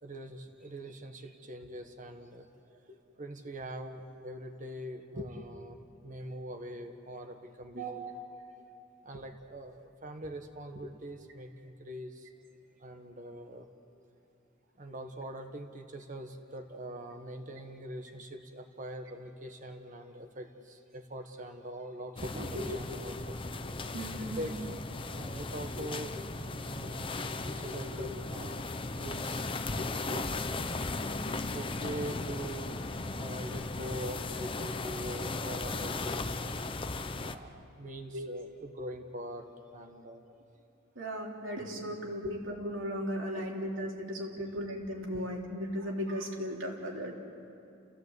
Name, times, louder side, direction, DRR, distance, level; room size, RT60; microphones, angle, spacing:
voice 1, 0.0-5.8 6.0-8.1 9.0-12.3 12.8-13.7 14.8-24.0 24.4-29.5 29.8-32.8 33.2-36.4 37.0-39.4 39.7-40.3 44.4-44.5 45.1-45.3, equal, 40° right, 6 dB, 1.5 m, -43 dB
voice 2, 7.7-8.4 23.9-24.5 38.1-38.3 40.9-47.1, equal, 70° right, -1 dB, 3.5 m, -37 dB
sound 1, 22.2-37.3, left 3 dB, 25° left, 0.7 m, -37 dB
30.0 x 16.0 x 8.1 m, 2.6 s
head